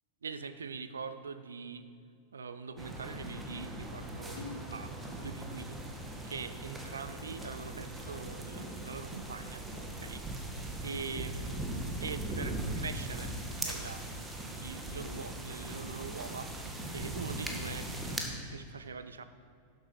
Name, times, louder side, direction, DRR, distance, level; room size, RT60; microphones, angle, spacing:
voice 1, 0.2-1.9 2.3-9.6 10.0-10.4 10.8-11.7 12.0-17.9 18.2-19.2, right 5 dB, 70° right, 11 dB, 0.7 m, -43 dB
sound 1, 2.8-18.2, right 1 dB, 10° right, 1.7 m, -40 dB
Splash splatter, 4.3-6.8 7.3-8.7 9.1-10.8, left 3 dB, 60° left, 1.4 m, -51 dB
11.5 x 7.5 x 5.8 m, 2.3 s
figure-of-eight pair, 90°, 0 cm